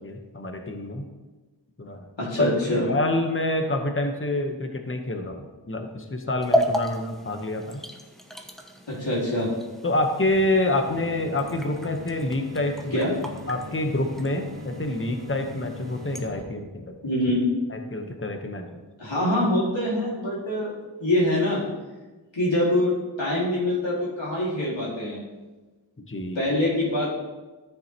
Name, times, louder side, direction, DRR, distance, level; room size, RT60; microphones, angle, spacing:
voice 1, 0.0-1.0 1.8-2.0 2.4-7.8 9.8-13.0 13.5-17.0 17.7-18.8 26.1-26.4, left 1 dB, 30° left, 5 dB, 1.0 m, -27 dB
voice 2, 2.2-2.9 8.9-9.5 12.9-13.1 17.0-17.5 19.0-20.7 21.0-21.6 22.3-22.9 23.2-25.2 26.3-27.1, left 1 dB, 85° left, -7 dB, 2.2 m, -24 dB
sound 1, 6.4-16.3, equal, ahead, 1.0 m, -34 dB
sound 2, 10.3-16.4, left 2 dB, 30° right, 3.1 m, -41 dB
13.0 x 7.1 x 3.0 m, 1.2 s
wide cardioid pair, 45°, 44 cm